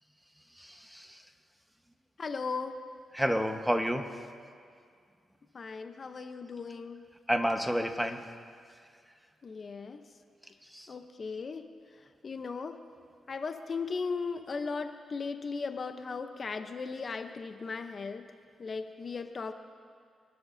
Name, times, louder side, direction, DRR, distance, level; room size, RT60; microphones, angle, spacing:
voice 1, 0.6-1.2 3.1-4.1 7.3-8.3 10.6-10.9, equal, 5° right, 6 dB, 1.3 m, -30 dB
voice 2, 2.2-2.8 5.5-7.0 9.4-10.0 10.9-11.7 12.0-12.8 13.3-18.3 18.6-19.5, left 4 dB, 50° left, 7 dB, 0.8 m, -37 dB
28.0 x 12.0 x 2.8 m, 2.2 s
cardioid pair, 60°, 0 cm